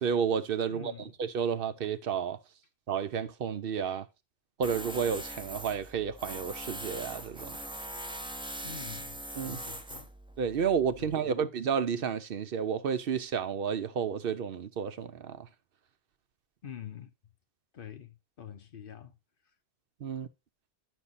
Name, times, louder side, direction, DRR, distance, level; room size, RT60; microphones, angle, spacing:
voice 1, 0.0-0.9 1.2-2.4 2.9-4.1 4.6-7.6 9.4-9.6 10.4-15.5 20.0-20.3, right 7 dB, 65° right, 0.8 m, -31 dB
voice 2, 0.6-1.1 8.6-10.1 11.0-11.5 16.6-17.1 17.7-19.2, left 9 dB, 60° left, 1.0 m, -46 dB
Tools, 4.6-11.1, right 1 dB, 5° right, 0.6 m, -41 dB
9.9 x 6.4 x 4.1 m
omnidirectional pair, 1.1 m